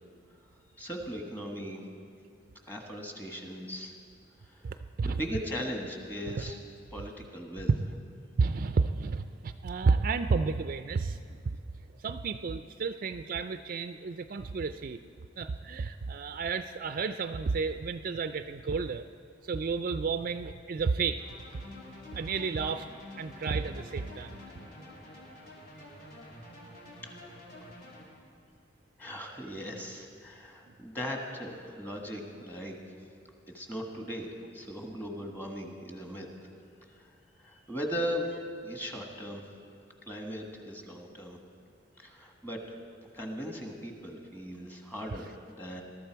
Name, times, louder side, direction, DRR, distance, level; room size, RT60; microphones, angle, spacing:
voice 1, 0.8-1.8 2.7-3.9 4.4-4.7 5.0-6.6 6.9-7.7 25.8-25.9 27.0-27.1 29.0-33.0 33.5-36.5 36.9-38.3 38.6-39.5 40.1-41.4 42.0-42.6 43.1-45.8, equal, 10° left, 2 dB, 1.5 m, -38 dB
voice 2, 4.6-5.2 6.4-6.5 8.4-11.6 12.0-15.0 15.4-19.1 19.4-21.2 22.1-22.9 23.2-24.4, right 4 dB, 45° right, 10 dB, 0.4 m, -31 dB
sound 1, 21.2-28.0, left 1 dB, 50° left, 2.7 m, -48 dB
20.5 x 12.5 x 4.6 m, 2.3 s
head